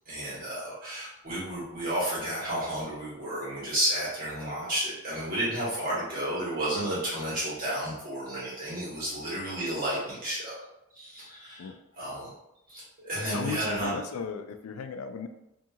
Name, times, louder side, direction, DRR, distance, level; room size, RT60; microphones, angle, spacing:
voice 1, 0.1-10.5 10.9-11.7 12.0-12.3 12.7-13.9, right 1 dB, 40° right, -9 dB, 1.3 m, -32 dB
voice 2, 11.6-12.1 13.2-15.3, left 5 dB, 90° left, 9 dB, 0.3 m, -36 dB
2.7 x 2.4 x 2.8 m, 0.86 s
head